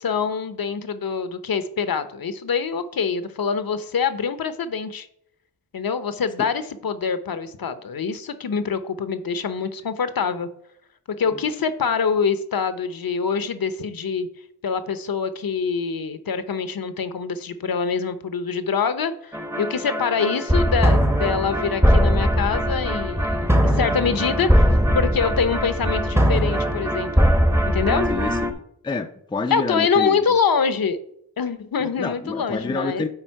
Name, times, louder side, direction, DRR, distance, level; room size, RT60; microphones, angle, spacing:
voice 1, 0.0-5.1 5.7-10.5 11.2-14.3 14.6-24.7 24.9-27.3 27.6-28.1 29.5-31.0 31.4-33.1, left 6 dB, 55° left, 11 dB, 0.8 m, -25 dB
sound 1, 19.3-28.5, equal, 5° right, 0.8 m, -20 dB
voice 2, 28.1-30.2 31.8-33.1, left 3 dB, 10° left, 6 dB, 0.4 m, -28 dB
8.9 x 3.5 x 4.6 m, 0.71 s
wide cardioid pair, 85°, 42 cm